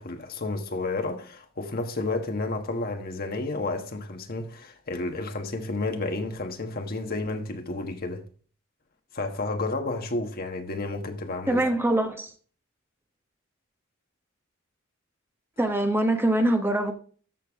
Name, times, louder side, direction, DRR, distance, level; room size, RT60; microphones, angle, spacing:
voice 1, 0.0-8.2 9.1-11.6, left 2 dB, 45° left, 1.4 m, -31 dB
voice 2, 11.5-12.3 15.6-16.9, right 1 dB, 10° right, 1.0 m, -23 dB
13.5 x 6.9 x 3.6 m
head